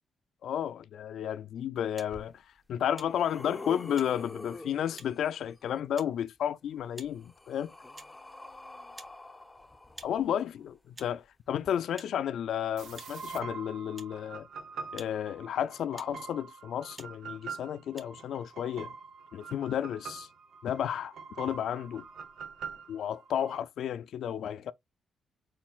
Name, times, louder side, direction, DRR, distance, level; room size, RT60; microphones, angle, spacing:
voice 1, 0.4-2.4 2.7-7.7 10.0-14.5 14.9-18.9 19.3-20.3 20.6-22.0 22.9-24.7, left 9 dB, 75° left, 0.3 m, -32 dB
sound 1, 1.9-2.1 2.9-3.1 4.0-4.1 5.0-5.1 6.0-6.1 6.9-7.1 7.9-8.1 8.9-9.2 9.9-10.1 10.9-11.1 12.0-12.1 12.9-13.1 14.0-14.1 14.9-15.1 15.9-16.2 16.9-17.1 17.9-18.0, right 2 dB, 25° right, 0.8 m, -48 dB
sound 2, 2.1-2.2 2.8-5.5 6.7-10.6 11.6-11.7, left 2 dB, 15° left, 0.6 m, -46 dB
sound 3, 12.8-23.6, right 5 dB, 80° right, 0.9 m, -44 dB
4.3 x 4.2 x 2.3 m
cardioid pair, 100°, 0 cm